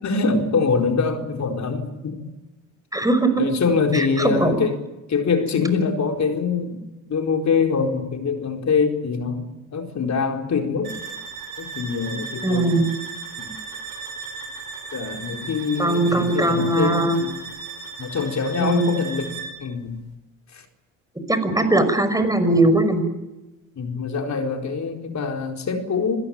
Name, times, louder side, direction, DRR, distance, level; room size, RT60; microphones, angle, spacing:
voice 1, 0.0-2.3 3.4-4.8 5.1-6.8 7.1-10.9 11.6-12.8 13.4-13.5 14.9-17.4 18.0-19.3 19.6-20.0 20.5-20.6 23.8-26.3, left 5 dB, 40° left, 4 dB, 4.5 m, -24 dB
voice 2, 2.9-3.3 3.9-4.5 12.4-12.9 15.8-17.2 18.6-18.8 21.3-23.0, right 2 dB, 10° right, 9 dB, 5.7 m, -20 dB
sound 1, 10.8-19.6, right 4 dB, 55° right, 6.4 m, -36 dB
27.0 x 16.5 x 9.2 m, 1.1 s
hypercardioid pair, 65°, 43 cm